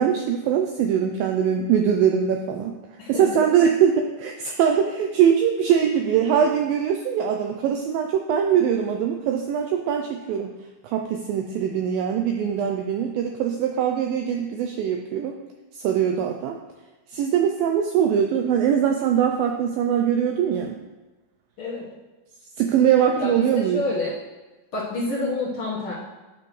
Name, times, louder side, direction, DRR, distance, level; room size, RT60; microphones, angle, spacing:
voice 1, 0.0-2.8 3.1-10.5 10.8-15.4 15.7-16.6 17.1-20.8 22.6-23.8, right 8 dB, 90° right, 3 dB, 2.0 m, -22 dB
voice 2, 23.2-24.1 24.7-25.9, left 2 dB, 70° left, -7 dB, 1.3 m, -28 dB
10.0 x 5.9 x 3.1 m, 1.2 s
omnidirectional pair, 4.6 m